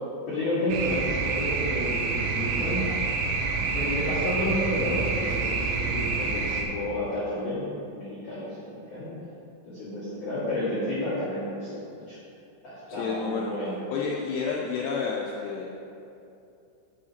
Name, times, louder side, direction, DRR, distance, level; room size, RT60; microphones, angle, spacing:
voice 1, 0.2-2.8 3.7-9.1 9.6-12.2 12.6-13.8, left 1 dB, 60° left, -12 dB, 1.7 m, -31 dB
sound 1, 0.7-6.6, right 4 dB, 80° right, 3.1 m, -27 dB
voice 2, 12.9-13.5 13.9-15.7, left 5 dB, 90° left, -2 dB, 2.4 m, -30 dB
11.0 x 5.7 x 2.8 m, 2.7 s
omnidirectional pair, 5.5 m